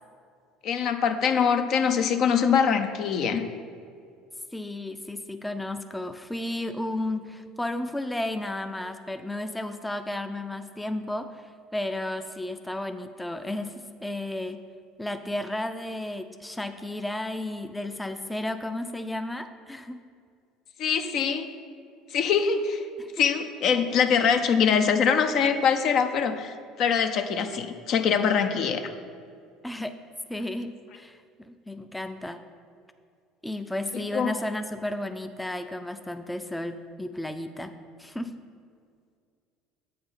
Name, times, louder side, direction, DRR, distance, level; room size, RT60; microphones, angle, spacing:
voice 1, 0.6-3.4 20.8-21.5 22.1-22.8 23.2-28.9 34.1-34.3, left 6 dB, 55° left, 7 dB, 0.6 m, -23 dB
voice 2, 4.5-14.6 15.0-20.0 23.0-23.1 29.6-30.0 30.3-32.4 33.4-37.7 38.0-38.4, left 1 dB, 10° left, 8 dB, 0.5 m, -33 dB
8.0 x 5.1 x 5.6 m, 2.3 s
hypercardioid pair, 75°, 0 cm